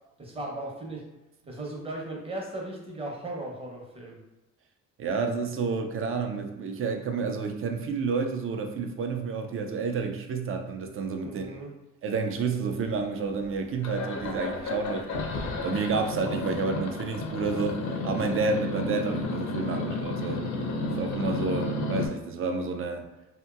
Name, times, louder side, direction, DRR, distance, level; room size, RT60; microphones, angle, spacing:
voice 1, 0.2-1.0 1.5-4.2 11.2-11.7 19.7-19.8, right 2 dB, 20° right, -2 dB, 0.8 m, -37 dB
voice 2, 5.0-11.6 12.0-20.4 21.0-23.1, right 4 dB, 45° right, 5 dB, 0.5 m, -30 dB
sound 1, 13.0-13.5 13.8-22.1, left 2 dB, 70° left, 0.6 m, -32 dB
2.8 x 2.5 x 2.4 m, 0.98 s
cardioid pair, 90°, 30 cm